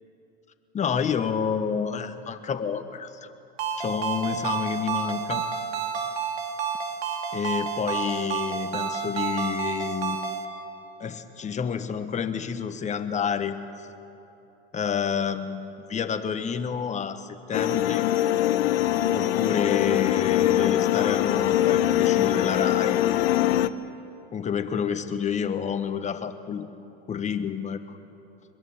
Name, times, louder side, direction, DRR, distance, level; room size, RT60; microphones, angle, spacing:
voice 1, 0.7-3.3 3.8-5.4 7.3-10.2 11.0-13.6 14.7-18.1 19.1-23.0 24.3-26.7 27.1-27.8, left 7 dB, 20° left, 9 dB, 1.3 m, -29 dB
Ringtone, 3.6-10.5, right 7 dB, 75° right, 3.0 m, -30 dB
sound 1, 17.5-23.7, left 12 dB, 70° left, 1.0 m, -23 dB
24.0 x 21.5 x 7.3 m, 2.9 s
hypercardioid pair, 115°, 31 cm